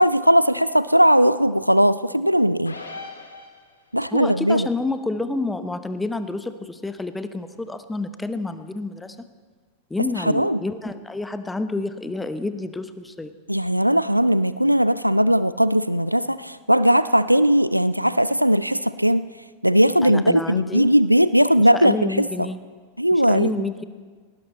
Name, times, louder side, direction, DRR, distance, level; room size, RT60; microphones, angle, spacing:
voice 1, 0.0-2.8 3.9-4.7 10.2-10.6 13.5-19.3 19.6-22.5 23.0-23.5, equal, 90° right, 16 dB, 0.4 m, -18 dB
sound 1, 2.7-4.0, left 3 dB, 80° left, 2.0 m, -39 dB
voice 2, 4.1-9.2 9.9-13.3 20.0-20.9 21.6-22.6 23.1-23.8, left 2 dB, 10° left, 11 dB, 0.9 m, -29 dB
19.0 x 18.0 x 4.2 m, 1.5 s
figure-of-eight pair, 90°, 0 cm